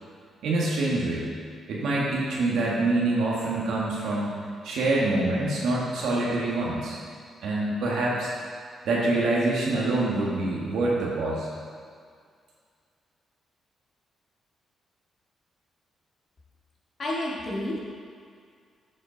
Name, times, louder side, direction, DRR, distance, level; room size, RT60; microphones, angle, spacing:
voice 1, 0.4-1.3 1.7-4.3 4.6-7.0 7.4-8.3 8.9-11.5, right 2 dB, 80° right, -4 dB, 1.8 m, -25 dB
voice 2, 17.0-17.8, left 1 dB, 50° left, -4 dB, 2.0 m, -30 dB
9.5 x 5.1 x 4.1 m, 2.1 s
cardioid pair, 70°, 0 cm